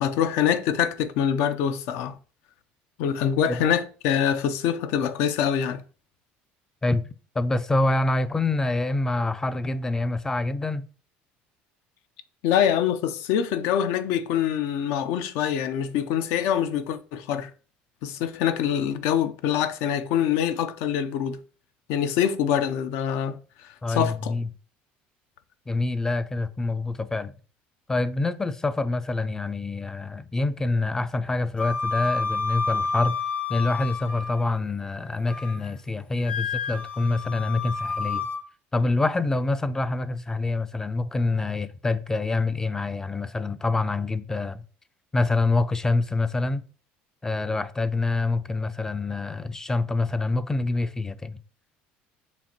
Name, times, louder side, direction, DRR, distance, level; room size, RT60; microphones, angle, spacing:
voice 1, 0.0-2.1 3.0-5.8 12.4-17.5 18.0-21.4 21.9-23.4 23.9-24.3, left 9 dB, 75° left, 0.5 m, -24 dB
voice 2, 7.4-10.8 23.8-24.5 25.7-27.3 27.9-33.2 33.5-38.3 38.7-44.6 45.1-46.6 47.2-51.4, left 2 dB, 10° left, 0.3 m, -26 dB
Wind instrument woodwind instrument, 31.6-34.6 35.0-35.7 36.2-38.4, left 4 dB, 30° left, 0.7 m, -30 dB
6.9 x 2.5 x 2.9 m
supercardioid pair, 115°, 4 cm